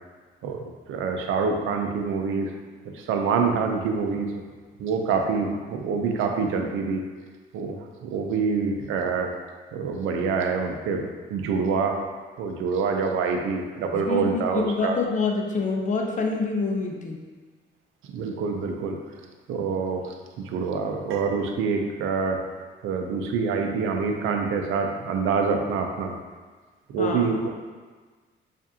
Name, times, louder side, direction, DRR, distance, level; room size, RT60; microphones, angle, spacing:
voice 1, 0.4-2.5 2.9-4.3 4.8-7.0 7.5-7.8 8.0-9.3 9.7-11.9 12.4-15.0 18.1-19.0 19.5-22.4 22.8-26.2 26.9-27.5, right 5 dB, 85° right, 3 dB, 0.5 m, -26 dB
voice 2, 13.9-17.2 27.0-27.3, left 4 dB, 40° left, 2 dB, 0.6 m, -26 dB
4.9 x 2.6 x 2.7 m, 1.4 s
cardioid pair, 90°, 20 cm